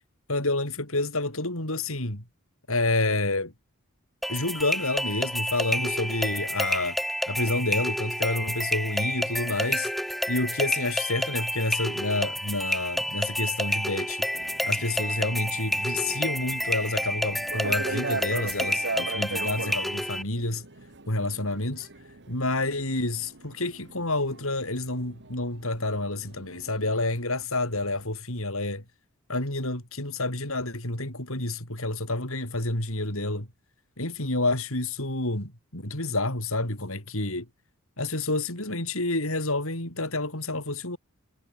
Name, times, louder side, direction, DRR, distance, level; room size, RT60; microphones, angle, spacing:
voice 1, 0.3-2.2 2.7-3.5 4.3-7.0 7.3-9.9 10.3-14.3 14.6-20.6 21.1-21.9 22.3-28.8 29.3-33.5 34.0-37.5 38.0-41.0, left 2 dB, 65° left, 7.3 m, -29 dB
sound 1, 4.2-20.2, equal, ahead, 1.5 m, -29 dB
sound 2, 14.3-27.2, right 3 dB, 55° right, 2.6 m, -40 dB
head